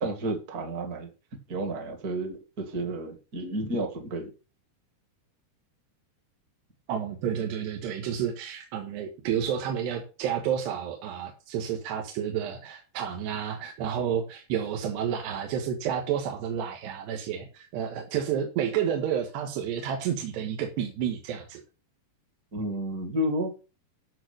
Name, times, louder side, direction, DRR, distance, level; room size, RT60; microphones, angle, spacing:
voice 1, 0.0-1.1 1.5-4.3 22.5-23.5, right 1 dB, 35° right, 5 dB, 1.5 m, -31 dB
voice 2, 6.9-21.6, right 9 dB, 90° right, 2 dB, 3.6 m, -30 dB
13.5 x 4.7 x 6.5 m, 0.33 s
omnidirectional pair, 4.7 m